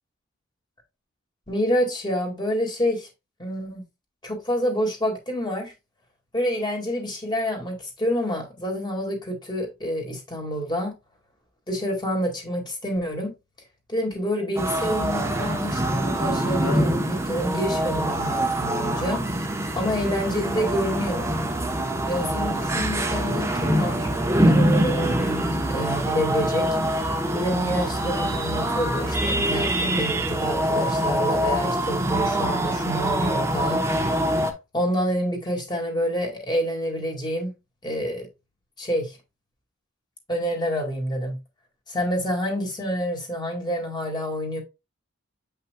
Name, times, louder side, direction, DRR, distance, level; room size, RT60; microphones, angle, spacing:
voice 1, 1.5-3.1 3.4-3.8 4.2-5.7 6.3-10.9 11.7-13.3 13.9-19.2 19.8-21.3 22.1-26.7 27.3-33.8 34.7-37.5 37.8-38.3 38.8-39.2 40.3-41.4 41.9-44.6, equal, 20° left, 1.9 m, -28 dB
sound 1, 14.6-34.5, right 1 dB, 15° right, 0.8 m, -24 dB
7.6 x 5.6 x 2.2 m
head